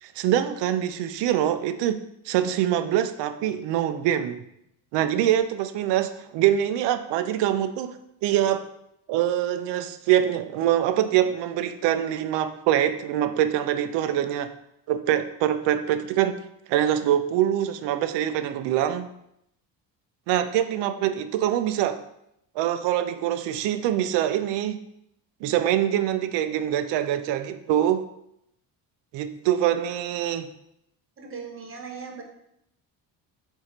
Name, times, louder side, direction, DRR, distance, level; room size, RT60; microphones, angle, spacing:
voice 1, 0.0-2.0 2.3-4.4 4.9-8.0 8.2-8.6 9.1-14.5 14.9-16.4 16.7-19.1 20.3-22.0 22.6-24.8 25.4-28.0 29.1-30.5, right 11 dB, 90° right, 10 dB, 0.6 m, -24 dB
voice 2, 31.2-32.2, right 5 dB, 30° right, 3 dB, 1.0 m, -38 dB
7.4 x 2.8 x 5.1 m, 0.78 s
cardioid pair, 135°, 41 cm